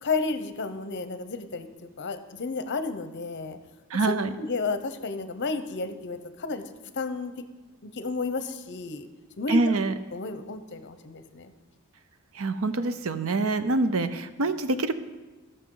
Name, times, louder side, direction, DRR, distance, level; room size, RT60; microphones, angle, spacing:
voice 1, 0.0-1.7 2.0-3.6 4.4-6.6 7.0-7.3 7.8-9.1 9.4-9.6 10.1-11.5, left 4 dB, 50° left, 10 dB, 0.8 m, -32 dB
voice 2, 3.9-4.3 9.5-9.9 12.3-14.9, right 2 dB, 65° right, 11 dB, 0.6 m, -25 dB
18.0 x 6.7 x 3.9 m, 1.2 s
head